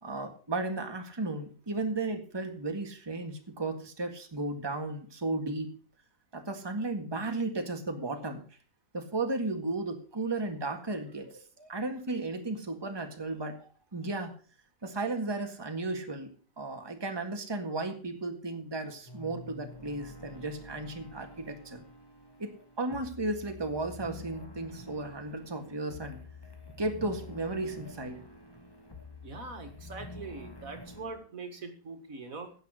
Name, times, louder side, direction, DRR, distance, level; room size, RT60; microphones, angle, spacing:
voice 1, 0.0-5.7 6.3-8.4 8.9-14.3 14.8-16.3 16.6-21.8 22.4-22.5 22.8-26.2 26.8-28.2, right 2 dB, 15° right, 5 dB, 1.7 m, -34 dB
sound 1, 19.1-31.2, left 2 dB, 15° left, 1.8 m, -48 dB
voice 2, 29.2-32.5, right 3 dB, 60° right, 7 dB, 2.3 m, -42 dB
16.5 x 6.6 x 6.4 m, 0.41 s
omnidirectional pair, 1.6 m